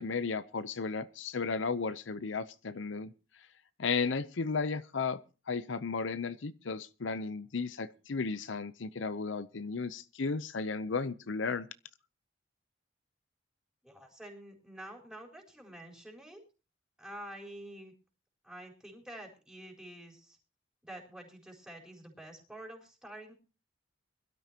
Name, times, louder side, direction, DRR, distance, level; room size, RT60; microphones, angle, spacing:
voice 1, 0.0-3.1 3.8-5.2 5.5-11.7, left 4 dB, 80° left, 0.7 m, -34 dB
voice 2, 13.8-16.4 17.0-17.9 18.4-20.4 20.8-23.3, right 1 dB, 5° right, 4.3 m, -48 dB
23.0 x 12.5 x 2.9 m
head